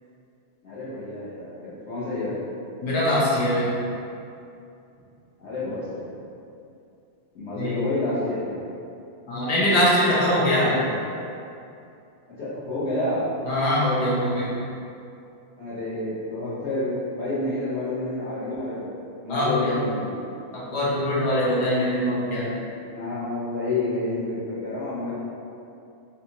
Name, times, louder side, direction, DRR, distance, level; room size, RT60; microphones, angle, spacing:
voice 1, 0.6-2.4 5.4-6.1 7.3-8.6 10.5-10.9 12.4-13.3 15.6-19.0 19.2-20.1 22.9-25.1, left 2 dB, 80° left, -12 dB, 0.6 m, -29 dB
voice 2, 2.8-3.8 7.5-7.8 9.3-10.7 13.4-14.6 19.3-19.8 20.5-22.5, equal, 65° left, -7 dB, 1.1 m, -22 dB
4.1 x 2.4 x 2.8 m, 2.6 s
omnidirectional pair, 2.3 m